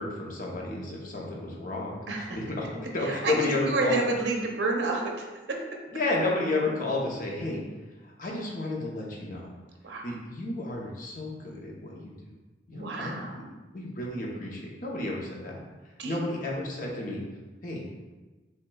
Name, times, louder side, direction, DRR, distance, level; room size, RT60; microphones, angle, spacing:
voice 1, 0.0-2.7 2.9-4.0 5.9-7.6 8.0-9.5 10.0-12.3 12.7-13.3 13.7-15.6 16.0-17.2 17.6-17.8, left 2 dB, 45° left, -2 dB, 0.7 m, -32 dB
voice 2, 3.0-5.6 9.8-10.1 12.7-13.4 16.0-16.2, right 2 dB, 70° right, 1 dB, 0.6 m, -30 dB
5.9 x 2.2 x 2.2 m, 1.2 s
head